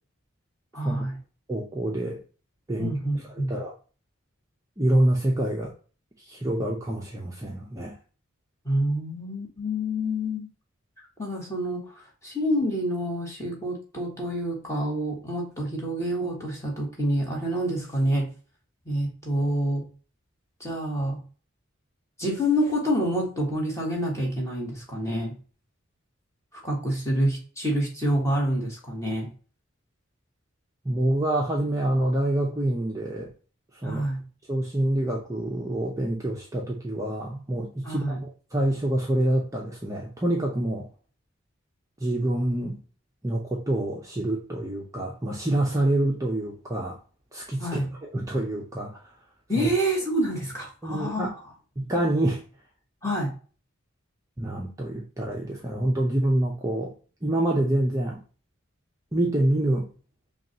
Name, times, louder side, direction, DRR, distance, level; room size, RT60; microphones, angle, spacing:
voice 1, 0.7-1.2 2.8-3.6 8.6-10.5 11.2-18.3 18.8-19.9 20.6-21.2 22.2-25.4 26.5-29.3 33.8-34.2 37.8-38.2 47.6-47.9 49.5-51.3 53.0-53.3, equal, 15° left, -2 dB, 1.4 m, -27 dB
voice 2, 1.5-2.2 2.7-3.0 3.3-3.7 4.8-5.7 6.3-8.0 30.8-33.3 33.8-34.0 34.5-40.9 42.0-42.8 43.2-47.0 47.3-49.0 49.6-49.7 50.8-51.3 51.8-52.4 54.4-56.9 57.2-58.2 59.1-59.9, right 1 dB, 15° right, -2 dB, 0.6 m, -26 dB
5.7 x 2.4 x 2.8 m, 0.37 s
head